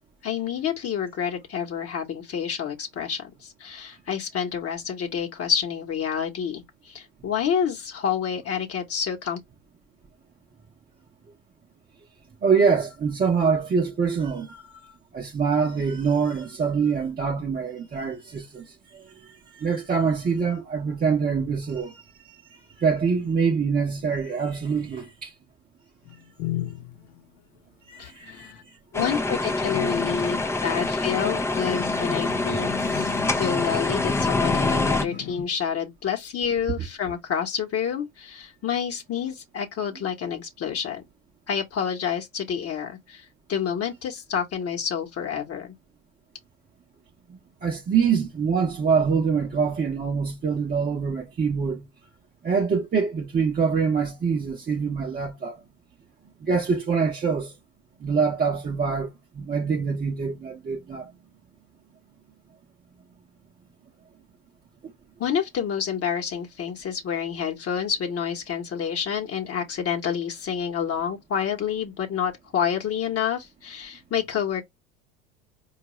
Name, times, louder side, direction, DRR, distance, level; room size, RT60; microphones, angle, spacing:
voice 1, 0.2-9.4 28.0-28.6 28.9-41.0 41.5-45.7 65.2-74.6, left 7 dB, 35° left, 1.1 m, -28 dB
voice 2, 12.4-22.0 22.5-25.3 27.9-28.8 32.9-33.0 33.3-33.7 47.3-51.9 52.4-55.6 56.4-57.5 58.0-61.1, right 5 dB, 20° right, 0.8 m, -25 dB
sound 1, 26.1-27.2 28.3-28.6 29.0-35.5, left 11 dB, 60° left, 0.8 m, -36 dB
sound 2, 28.9-35.1, left 2 dB, 5° left, 0.5 m, -25 dB
4.5 x 2.4 x 3.0 m
hypercardioid pair, 80°, 41 cm